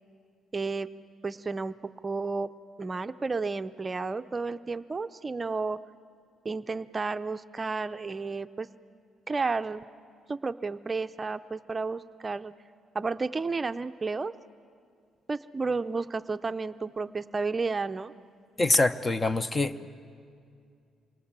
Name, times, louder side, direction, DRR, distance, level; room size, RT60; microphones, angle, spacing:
voice 1, 0.5-0.9 1.2-1.7 2.0-2.5 2.8-5.8 6.4-8.7 9.3-9.8 10.3-12.5 12.9-14.3 15.3-18.1, right 4 dB, 30° right, 10 dB, 0.5 m, -32 dB
voice 2, 18.6-19.9, left 2 dB, 25° left, 13 dB, 0.8 m, -25 dB
27.5 x 24.0 x 7.4 m, 2.3 s
cardioid pair, 90°, 0 cm